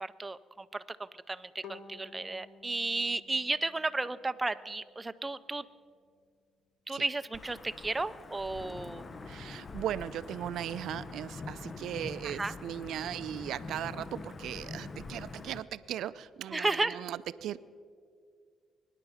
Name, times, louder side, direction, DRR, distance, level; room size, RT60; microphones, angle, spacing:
voice 1, 0.0-5.6 6.9-9.0 12.2-12.5 16.5-17.0, right 3 dB, 20° right, 12 dB, 0.5 m, -34 dB
Bowed string instrument, 1.6-4.7, left 4 dB, 65° left, 1.3 m, -53 dB
Wind / Thunder / Rain, 7.3-15.6, left 3 dB, 35° left, 0.7 m, -44 dB
voice 2, 9.3-17.6, right 11 dB, 80° right, 15 dB, 0.4 m, -38 dB
22.5 x 10.0 x 5.6 m, 2.2 s
cardioid pair, 90°, 0 cm